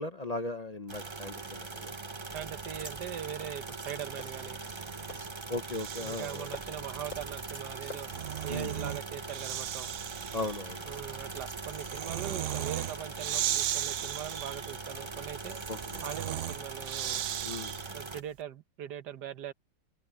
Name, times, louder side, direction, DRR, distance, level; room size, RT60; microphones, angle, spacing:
voice 1, 0.0-2.0 5.5-6.5 8.5-8.9 10.3-10.8 12.3-12.4 15.7-15.8 17.4-17.8, left 2 dB, 45° left, 0.5 m, -37 dB
sound 1, 0.9-18.2, right 3 dB, 25° right, 0.6 m, -41 dB
sound 2, 1.6-10.5, left 3 dB, 80° left, 7.5 m, -54 dB
voice 2, 2.3-4.6 6.0-8.1 8.4-9.9 10.9-15.6 16.0-17.2 17.9-19.5, right 10 dB, 65° right, 1.6 m, -41 dB
Breathing, 4.6-6.5 7.8-18.1, right 12 dB, 85° right, 0.6 m, -37 dB
omnidirectional pair, 2.0 m